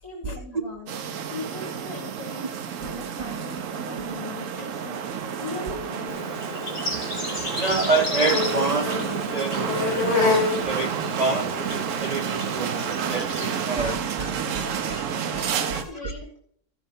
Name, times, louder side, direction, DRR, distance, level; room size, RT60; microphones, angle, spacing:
voice 1, 0.0-1.0 1.3-5.0 5.4-6.5 15.2-16.4, left 3 dB, 60° left, -1 dB, 2.2 m, -39 dB
sound 1, 0.9-15.8, right 8 dB, 65° right, 1.0 m, -30 dB
Insect, 6.1-13.7, left 3 dB, 45° left, 3.0 m, -29 dB
voice 2, 7.6-11.6 12.0-16.1, right 3 dB, 80° right, 7 dB, 0.3 m, -28 dB
13.5 x 5.5 x 5.4 m, 0.65 s
omnidirectional pair, 1.6 m